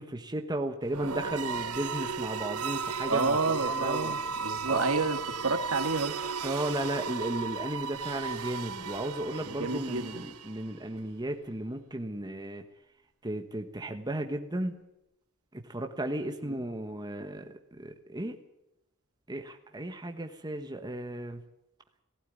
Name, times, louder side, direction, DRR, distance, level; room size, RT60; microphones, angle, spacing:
voice 1, 0.0-4.1 4.7-4.8 6.4-12.6 13.2-14.8 15.5-18.4 19.3-21.4, right 1 dB, 20° right, 5 dB, 1.3 m, -35 dB
sound 1, 0.9-10.8, right 5 dB, 80° right, 0.9 m, -35 dB
voice 2, 3.1-6.1 9.4-10.2 16.4-16.6, right 3 dB, 65° right, 6 dB, 2.2 m, -30 dB
18.5 x 16.0 x 9.4 m, 0.86 s
head